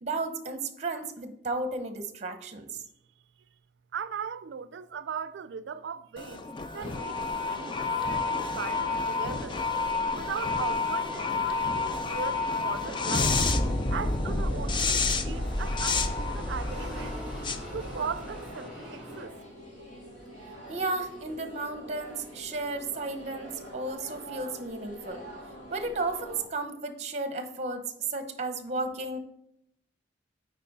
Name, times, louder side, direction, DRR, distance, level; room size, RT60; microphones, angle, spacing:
voice 1, 0.0-2.8 20.7-25.2 25.7-27.8 28.1-29.2, right 2 dB, 40° right, 0.8 m, -33 dB
voice 2, 3.9-6.4 6.7-7.2 7.5-9.6 10.1-13.4 13.9-17.2 17.7-19.4, right 7 dB, 80° right, 0.4 m, -38 dB
sound 1, 6.2-18.5, left 3 dB, 25° left, 0.5 m, -29 dB
sound 2, 6.7-26.4, equal, 65° left, 2.7 m, -45 dB
sound 3, 12.0-19.2, equal, 5° right, 2.5 m, -45 dB
8.2 x 4.7 x 4.0 m
head